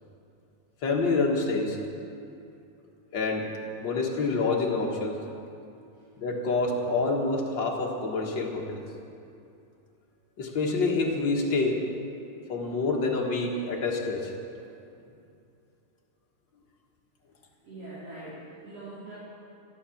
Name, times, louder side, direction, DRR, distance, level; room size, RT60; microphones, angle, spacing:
voice 1, 0.8-1.8 3.1-3.5 3.8-5.2 6.2-8.8 10.4-11.8 12.5-14.3, left 3 dB, 45° left, -1 dB, 1.6 m, -27 dB
voice 2, 17.6-19.2, right 2 dB, 50° right, -11 dB, 4.7 m, -42 dB
13.0 x 12.5 x 7.1 m, 2.6 s
omnidirectional pair, 3.7 m